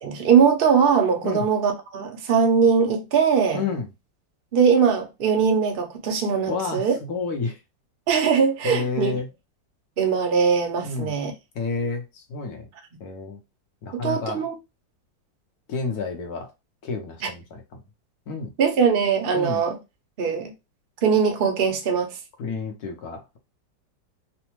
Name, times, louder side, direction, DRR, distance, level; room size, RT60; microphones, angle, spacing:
voice 1, 0.0-3.6 4.5-6.9 8.1-9.1 10.0-11.3 13.9-14.6 17.2-17.3 18.6-19.8 20.2-20.5 21.0-22.1, right 6 dB, 85° right, 0.5 m, -21 dB
voice 2, 3.5-3.9 6.5-7.6 8.6-9.3 10.8-11.1 11.5-12.7 13.0-13.4 13.8-14.4 15.7-16.5 16.8-17.8 18.3-18.5 19.3-19.6 22.4-23.4, left 4 dB, 65° left, 1.1 m, -30 dB
3.3 x 2.1 x 3.0 m
omnidirectional pair, 2.0 m